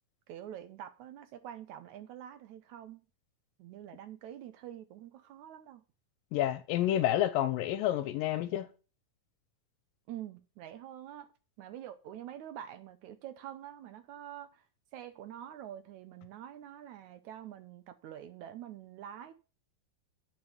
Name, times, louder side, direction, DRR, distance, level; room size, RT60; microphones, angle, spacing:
voice 1, 0.3-3.0 3.6-5.8 10.1-11.3 11.6-14.7 14.9-19.3, right 11 dB, 75° right, 1.9 m, -46 dB
voice 2, 6.3-8.7, left 12 dB, 85° left, 2.5 m, -29 dB
9.0 x 6.0 x 7.2 m
omnidirectional pair, 3.9 m